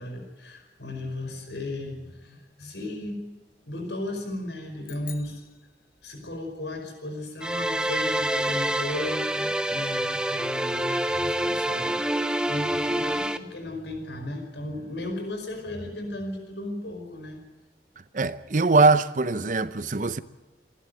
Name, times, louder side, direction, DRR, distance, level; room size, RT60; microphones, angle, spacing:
voice 1, 0.0-3.2 3.7-5.4 6.0-17.4, left 1 dB, 80° left, 5.3 m, -35 dB
sound 1, 4.8-6.5, left 11 dB, 50° left, 1.4 m, -48 dB
sound 2, 7.4-13.4, right 1 dB, 5° right, 0.7 m, -27 dB
voice 2, 18.1-20.2, right 3 dB, 45° right, 0.7 m, -22 dB
27.0 x 12.0 x 9.2 m
head